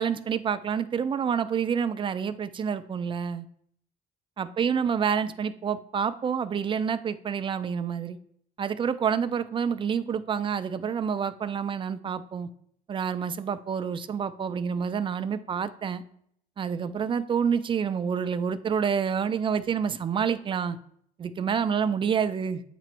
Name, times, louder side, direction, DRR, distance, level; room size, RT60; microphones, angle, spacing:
voice 1, 0.0-3.4 4.4-8.2 8.6-12.5 12.9-16.0 16.6-20.8 21.2-22.6, right 7 dB, 30° right, 13 dB, 0.4 m, -28 dB
8.4 x 3.0 x 4.4 m, 0.67 s
cardioid pair, 110°, 17 cm